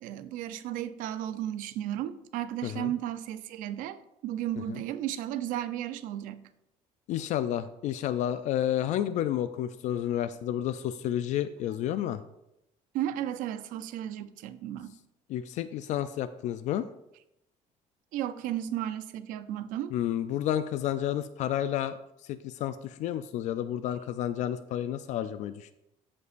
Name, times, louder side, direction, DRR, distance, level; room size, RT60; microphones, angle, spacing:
voice 1, 0.0-6.5 12.9-14.9 18.1-19.9, right 11 dB, 75° right, 12 dB, 0.6 m, -34 dB
voice 2, 2.6-2.9 4.7-4.8 7.1-12.2 15.3-16.9 19.9-21.9 22.2-25.7, left 11 dB, 60° left, 12 dB, 0.4 m, -31 dB
14.0 x 5.4 x 2.5 m, 0.85 s
cardioid pair, 160°, 14 cm